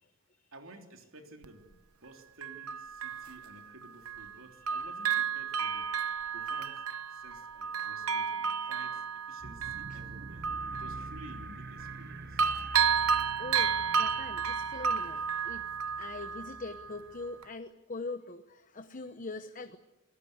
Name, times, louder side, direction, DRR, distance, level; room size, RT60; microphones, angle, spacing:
voice 1, 0.5-6.8 7.1-12.4, right 1 dB, 70° right, 5 dB, 3.2 m, -53 dB
Bell, 1.4-1.5 2.4-4.4 4.7-12.1 12.4-17.0 17.4-17.5, right 7 dB, 90° right, 1.1 m, -32 dB
sound 1, 9.4-17.5, right 2 dB, 50° right, 1.3 m, -47 dB
voice 2, 13.3-15.7 16.0-19.8, left 3 dB, 40° left, 9 dB, 1.0 m, -42 dB
28.0 x 19.5 x 8.1 m, 0.96 s
head